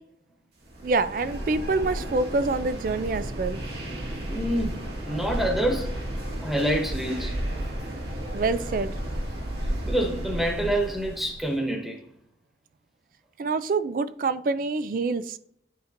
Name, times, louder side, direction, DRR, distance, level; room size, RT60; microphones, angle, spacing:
sound 1, 0.6-11.5, right 1 dB, 75° right, 1.8 m, -33 dB
voice 1, 0.8-3.6 8.3-8.9 13.4-15.4, right 3 dB, 50° right, 13 dB, 0.3 m, -26 dB
voice 2, 4.3-5.9 6.4-7.4 9.9-12.0, right 1 dB, ahead, 0 dB, 1.2 m, -27 dB
9.5 x 4.4 x 2.6 m, 0.69 s
head